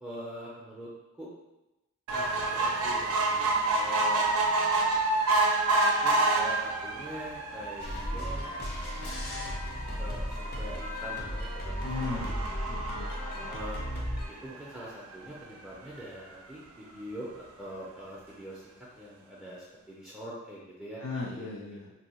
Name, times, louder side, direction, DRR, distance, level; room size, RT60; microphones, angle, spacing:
voice 1, 0.0-0.9 1.2-1.3 2.1-3.1 3.7-4.3 5.7-9.6 10.0-12.3 13.3-13.8 14.4-21.0 21.3-21.5, equal, 5° right, -7 dB, 0.4 m, -44 dB
sound 1, 2.1-14.7 15.2-15.3 15.6-15.7 16.0-16.1, right 2 dB, 80° right, 0.4 m, -29 dB
sound 2, 7.8-14.3, equal, 45° left, 0.6 m, -35 dB
voice 2, 11.8-12.4 12.7-13.6 21.0-21.9, left 3 dB, 85° left, -5 dB, 0.5 m, -37 dB
2.7 x 2.2 x 4.1 m, 0.98 s
head